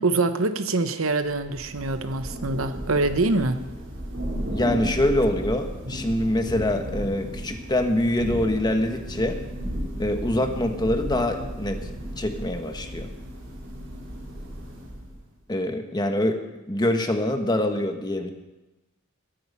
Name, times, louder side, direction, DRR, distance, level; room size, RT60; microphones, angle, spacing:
voice 1, 0.0-3.6, right 2 dB, 85° right, 9 dB, 1.0 m, -24 dB
Thunder / Rain, 1.2-15.3, equal, 65° right, 4.0 m, -34 dB
voice 2, 4.5-9.4 10.0-11.9 12.2-13.1 15.5-16.4 16.7-18.3, left 1 dB, 20° left, 5 dB, 1.3 m, -24 dB
21.0 x 8.9 x 5.6 m, 1.1 s
head